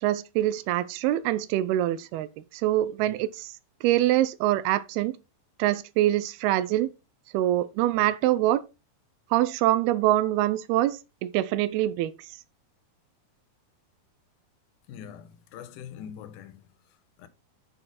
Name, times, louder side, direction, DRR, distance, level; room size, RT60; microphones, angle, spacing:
voice 1, 0.0-3.5 3.8-5.2 5.6-6.9 7.3-8.6 9.3-12.1, right 14 dB, 85° right, 2.6 m, -24 dB
voice 2, 14.9-17.3, left 8 dB, 75° left, 2.6 m, -44 dB
10.0 x 6.0 x 4.0 m
omnidirectional pair, 4.4 m